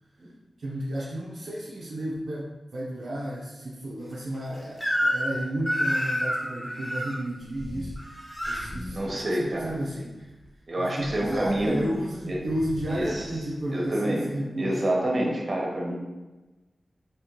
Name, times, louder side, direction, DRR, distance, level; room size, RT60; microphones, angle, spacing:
voice 1, 0.6-8.2 8.4-10.3 10.8-14.8, right 1 dB, 80° right, -5 dB, 0.5 m, -32 dB
Crying sobbing / Screech, 4.8-5.4 5.6-7.1 8.0-8.7, equal, 5° left, 0.7 m, -27 dB
sound 1, 7.4-8.0 8.3-10.5 11.0-13.9, left 1 dB, 55° left, 0.5 m, -43 dB
voice 2, 8.9-9.9 10.7-11.7 12.3-12.4 12.9-13.3 13.7-14.3 14.6-15.9, right 1 dB, 50° right, -2 dB, 0.9 m, -27 dB
3.6 x 2.9 x 2.9 m, 1.1 s
cardioid pair, 50°, 0 cm